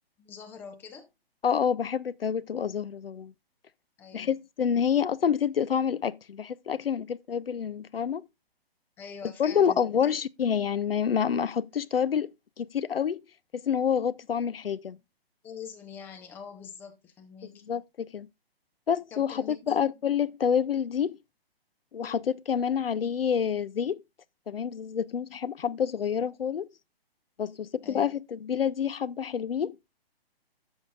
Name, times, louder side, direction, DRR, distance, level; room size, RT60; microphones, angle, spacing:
voice 1, 0.2-1.1 4.0-4.3 9.0-9.8 15.4-17.6 19.1-19.9 27.8-28.1, left 6 dB, 5° left, 0.6 m, -44 dB
voice 2, 1.4-3.3 4.1-8.2 9.4-12.3 12.6-13.2 13.5-15.0 17.4-18.3 18.9-21.2 21.9-24.0 24.5-26.7 27.4-29.8, left 7 dB, 65° left, 0.5 m, -28 dB
11.5 x 7.1 x 2.4 m
figure-of-eight pair, 130°, 31 cm